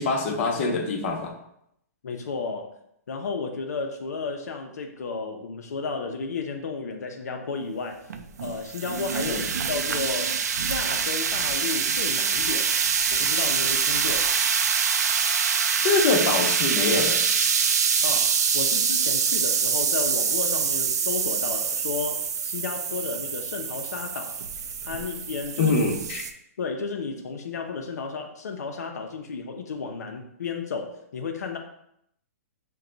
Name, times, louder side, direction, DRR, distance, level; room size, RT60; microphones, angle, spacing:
voice 1, 0.0-1.3 9.2-9.4 15.1-15.3 15.8-17.3 25.6-26.2, left 3 dB, 45° left, 2 dB, 0.8 m, -24 dB
voice 2, 2.0-2.7 3.1-8.0 8.4-10.4 10.7-12.7 13.1-14.3 18.0-24.4 24.9-25.8 26.6-31.6, left 4 dB, 85° left, 3 dB, 0.6 m, -33 dB
sound 1, 8.1-26.3, right 6 dB, 80° right, 0.5 m, -25 dB
5.7 x 2.3 x 3.8 m, 0.76 s
hypercardioid pair, 150°, 9 cm